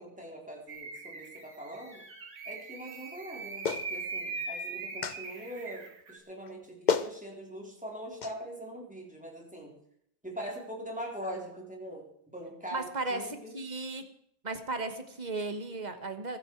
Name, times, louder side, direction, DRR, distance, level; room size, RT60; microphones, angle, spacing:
voice 1, 0.0-2.0 2.5-9.7 10.2-12.1 12.3-13.5, equal, 5° right, -1 dB, 3.8 m, -42 dB
sound 1, 0.7-6.2, right 3 dB, 65° right, 2.6 m, -41 dB
Clapping, 3.6-3.9 5.0-5.2 6.5-6.6 6.9-7.1 8.2-8.3, left 5 dB, 45° left, 0.5 m, -29 dB
voice 2, 12.7-14.0 14.4-16.4, right 2 dB, 25° right, 8 dB, 1.5 m, -35 dB
22.5 x 9.8 x 4.7 m, 0.71 s
omnidirectional pair, 2.0 m